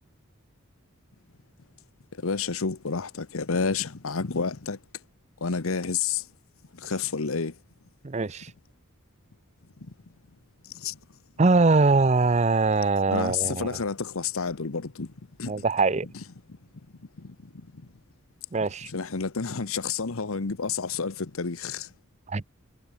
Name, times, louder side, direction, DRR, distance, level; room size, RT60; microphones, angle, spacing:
voice 1, 2.1-4.8 5.4-6.3 6.7-7.6 10.6-11.0 13.1-15.1 15.4-15.6 16.1-16.2 17.2-17.8 18.6-21.9, left 5 dB, 80° left, 1.0 m, -30 dB
voice 2, 8.0-8.5 11.4-13.7 15.5-16.1 18.5-18.9 22.3-22.4, right 3 dB, 30° right, 0.6 m, -22 dB
head